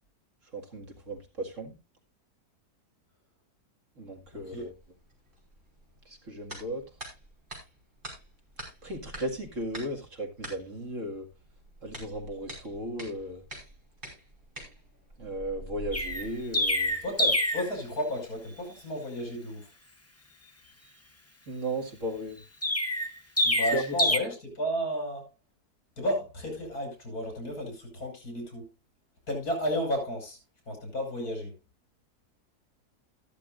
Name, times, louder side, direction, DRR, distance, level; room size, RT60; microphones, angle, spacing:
voice 1, 0.5-1.7 4.0-4.7 6.1-6.8 8.8-11.3 11.8-13.4 15.2-17.0 21.5-22.4 23.7-24.1, right 1 dB, 50° right, 2.4 m, -35 dB
sound 1, 4.2-18.8, right 1 dB, 30° right, 5.5 m, -48 dB
voice 2, 4.3-4.6 17.0-19.7 23.4-25.3 26.0-28.7 29.3-30.4 30.7-31.5, equal, 65° left, 6.4 m, -33 dB
Chirp tweet, 15.9-17.7 22.6-24.2, left 1 dB, 15° left, 0.6 m, -26 dB
13.5 x 12.5 x 2.5 m
omnidirectional pair, 1.7 m